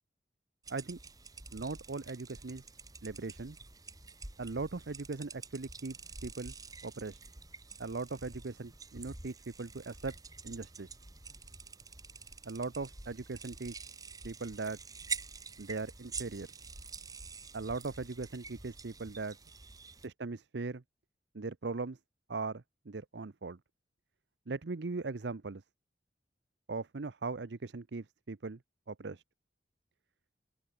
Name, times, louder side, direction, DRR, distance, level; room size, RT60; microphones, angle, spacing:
sound 1, 0.6-20.1, right 4 dB, 20° right, 2.4 m, -47 dB
voice 1, 1.5-2.6 3.0-3.6 4.4-6.0 6.2-6.5 6.8-7.2 7.8-10.1 10.4-10.9 12.4-13.9 14.2-14.8 15.6-16.5 17.5-19.4 20.0-20.8 21.3-22.0 22.3-23.6 24.5-25.6 26.7-28.6 28.9-29.2, right 3 dB, 75° right, 0.7 m, -39 dB
open air
head